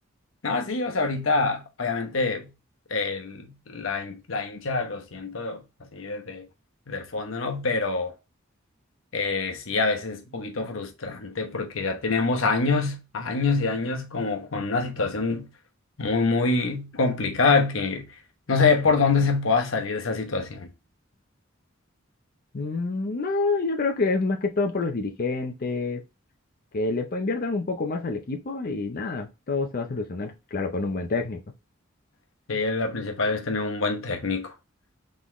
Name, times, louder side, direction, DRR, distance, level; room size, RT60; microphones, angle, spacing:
voice 1, 0.4-2.5 2.9-5.6 5.9-6.5 6.9-8.1 9.1-15.5 16.0-18.1 18.5-20.7 32.5-34.5, left 4 dB, 90° left, 0.9 m, -25 dB
voice 2, 22.5-26.0 26.7-31.4, left 3 dB, 45° left, 0.5 m, -27 dB
3.9 x 3.8 x 3.0 m
head